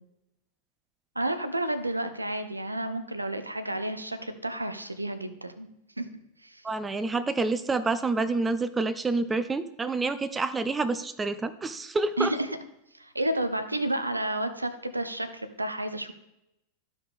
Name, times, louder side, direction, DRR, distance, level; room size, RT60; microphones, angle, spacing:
voice 1, 1.2-5.7 6.0-6.1 6.4-6.6 12.2-12.5 12.9-16.1, right 1 dB, 85° right, 10 dB, 0.6 m, -31 dB
voice 2, 6.6-12.3, right 3 dB, 15° right, 13 dB, 0.4 m, -28 dB
12.5 x 5.0 x 3.5 m, 0.87 s
figure-of-eight pair, 90°, 0 cm